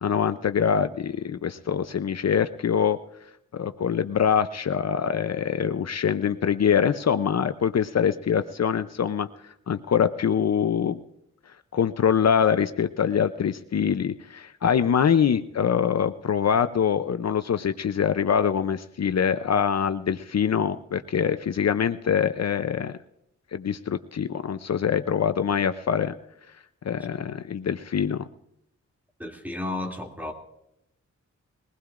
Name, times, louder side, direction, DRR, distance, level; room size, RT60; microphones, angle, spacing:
voice 1, 0.0-3.0 3.5-9.3 9.7-11.0 11.7-22.9 23.5-26.1 26.8-28.2, left 7 dB, 60° left, 11 dB, 0.6 m, -24 dB
voice 2, 29.2-30.3, left 2 dB, 5° right, 1 dB, 2.5 m, -32 dB
21.5 x 19.0 x 2.5 m, 0.81 s
wide cardioid pair, 115°, 29 cm